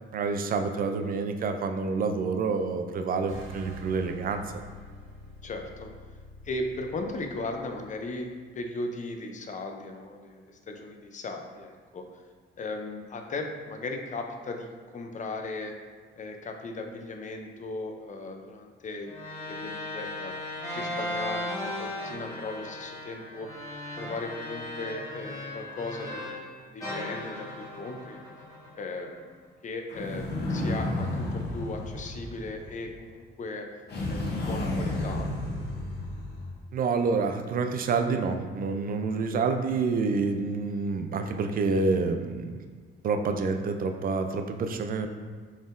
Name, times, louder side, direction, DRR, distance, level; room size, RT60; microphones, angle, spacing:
voice 1, 0.1-4.4 36.7-42.6 43.0-45.1, right 4 dB, 45° right, 6 dB, 0.4 m, -28 dB
sound 1, 3.3-8.1, equal, 80° right, 0.8 m, -46 dB
voice 2, 5.4-5.9 6.4-8.3 8.5-12.0 12.6-15.7 16.2-19.1 19.5-20.3 20.7-23.5 24.0-28.2 28.7-29.3 29.6-33.7 34.1-35.3 39.1-39.4, left 2 dB, 40° left, 4 dB, 0.5 m, -37 dB
sound 2, 19.1-26.5 26.8-29.2, left 1 dB, 20° left, 1.5 m, -37 dB
sound 3, 29.9-33.0 33.9-36.6, left 1 dB, 55° left, 0.9 m, -32 dB
4.0 x 3.6 x 2.5 m, 1.5 s
cardioid pair, 90°, 20 cm